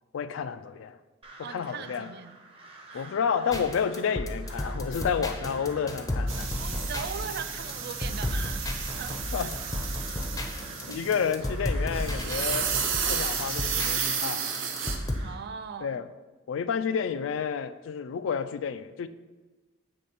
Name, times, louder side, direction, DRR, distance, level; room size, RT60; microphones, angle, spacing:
voice 1, 0.1-1.0 1.4-2.1 2.9-6.5 9.3-9.5 10.9-12.7 13.1-14.5 15.8-16.1 16.5-19.1, left 7 dB, 75° left, 12 dB, 0.3 m, -30 dB
Crow, 1.2-15.4, right 2 dB, 30° right, 0.7 m, -49 dB
voice 2, 1.4-2.4 2.9-3.1 6.6-9.5 15.2-15.9, right 6 dB, 55° right, 11 dB, 0.3 m, -39 dB
sound 1, 3.5-15.2, left 1 dB, 20° left, 0.5 m, -34 dB
sound 2, 6.3-11.5 11.8-15.0, right 7 dB, 80° right, 0.8 m, -32 dB
7.7 x 3.3 x 4.2 m, 1.2 s
head